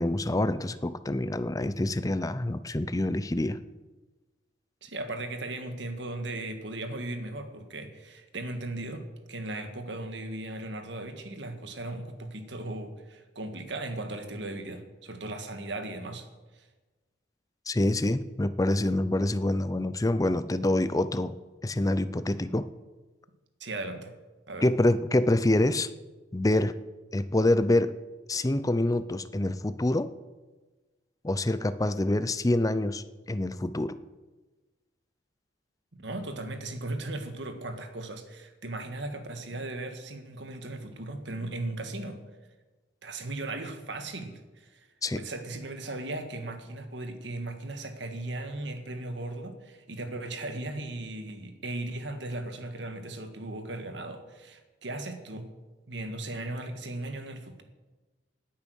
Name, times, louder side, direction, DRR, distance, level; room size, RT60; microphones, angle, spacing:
voice 1, 0.0-3.6 17.7-21.3 21.6-22.7 24.6-25.9 26.3-26.8 27.1-27.9 28.3-30.1 31.2-34.0 45.0-45.2, left 1 dB, 20° left, 13 dB, 0.6 m, -26 dB
voice 2, 4.8-16.3 16.5-16.7 23.6-24.1 24.5-24.7 35.9-42.2 43.0-44.9 45.1-55.5 55.9-57.6, right 2 dB, 70° right, 7 dB, 1.7 m, -37 dB
17.5 x 8.9 x 6.4 m, 1.2 s
head